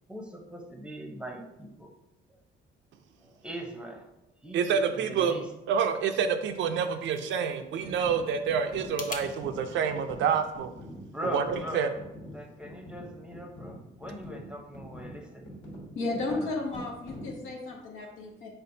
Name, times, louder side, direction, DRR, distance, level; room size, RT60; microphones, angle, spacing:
voice 1, 0.1-1.9 3.2-4.1 4.4-5.5 11.1-11.9 12.3-15.5 16.3-16.4, equal, 5° right, 1 dB, 0.7 m, -40 dB
voice 2, 4.5-5.3 5.7-10.7 11.3-11.9, right 6 dB, 75° right, 7 dB, 0.4 m, -28 dB
sound 1, 6.6-9.3, left 4 dB, 40° left, 0.7 m, -45 dB
sound 2, 7.8-17.5, equal, 65° left, 1.4 m, -45 dB
voice 3, 15.9-18.5, left 2 dB, 85° left, 0 dB, 1.0 m, -33 dB
4.3 x 3.7 x 2.7 m, 0.89 s
cardioid pair, 90°, 20 cm